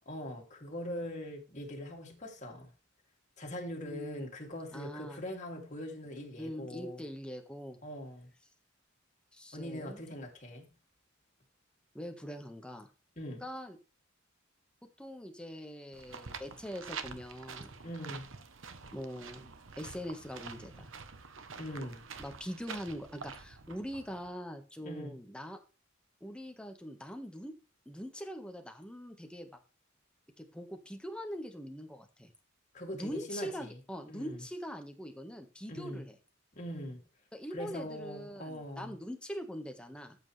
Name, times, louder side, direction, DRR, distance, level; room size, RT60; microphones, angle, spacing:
voice 1, 0.1-2.7 3.4-7.0 7.8-8.3 9.5-10.7 13.2-13.4 17.8-18.3 21.5-22.0 24.8-25.2 32.7-33.8 34.1-34.4 35.7-36.0 36.5-37.0 37.5-38.9, left 1 dB, 35° left, 2.9 m, -42 dB
voice 2, 3.8-4.3 4.7-5.2 6.4-7.8 9.3-10.0 11.9-12.9 13.4-13.8 15.0-17.7 18.9-19.5 19.8-20.9 22.2-25.6 26.2-27.5 27.8-29.5 30.4-32.3 32.9-36.1 37.3-40.2, equal, 5° left, 1.6 m, -42 dB
sound 1, 15.9-24.3, right 5 dB, 70° right, 1.1 m, -47 dB
13.5 x 8.2 x 3.4 m
head